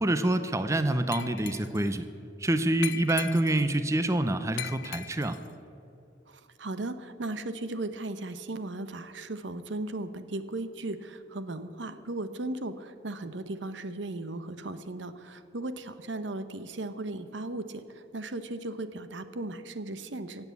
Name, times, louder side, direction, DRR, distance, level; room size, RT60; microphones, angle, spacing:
voice 1, 0.0-2.1 2.4-5.4, right 1 dB, 15° right, 10 dB, 0.6 m, -26 dB
Glass, 1.1-1.9 2.8-3.8 4.6-5.5, left 13 dB, 70° left, 0.3 m, -39 dB
voice 2, 6.3-20.5, right 2 dB, 80° right, 11 dB, 0.8 m, -36 dB
16.0 x 8.1 x 8.3 m, 2.7 s
head